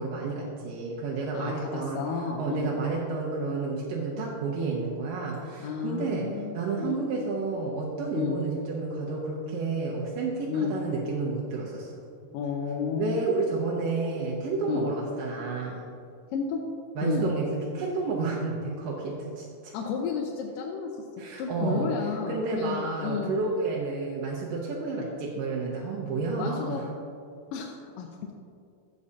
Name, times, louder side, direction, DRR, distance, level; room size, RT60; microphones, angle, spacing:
voice 1, 0.0-2.0 2.4-12.0 13.0-15.8 17.0-19.7 21.2-21.9 22.3-26.9, right 3 dB, 90° right, -4 dB, 2.6 m, -30 dB
voice 2, 1.3-2.7 5.6-7.3 8.1-8.4 10.5-10.7 12.3-13.2 14.7-14.9 16.3-16.6 17.0-17.3 19.7-20.9 21.4-23.4 26.4-26.9 27.5-28.3, left 6 dB, 90° left, 1 dB, 2.4 m, -32 dB
13.0 x 8.4 x 2.8 m, 2.4 s
omnidirectional pair, 3.8 m